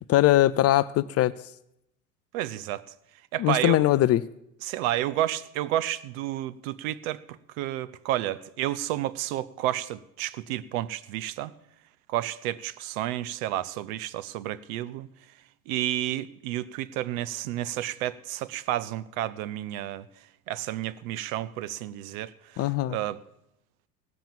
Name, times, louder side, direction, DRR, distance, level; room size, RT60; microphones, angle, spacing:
voice 1, 0.1-1.3 3.4-4.2 22.6-23.0, left 15 dB, 35° left, 0.4 m, -21 dB
voice 2, 2.3-2.8 3.3-3.8 4.6-11.5 12.1-15.1 15.7-20.1 20.5-23.2, right 13 dB, 65° right, 0.8 m, -31 dB
17.0 x 7.4 x 7.2 m
hypercardioid pair, 80°, 46 cm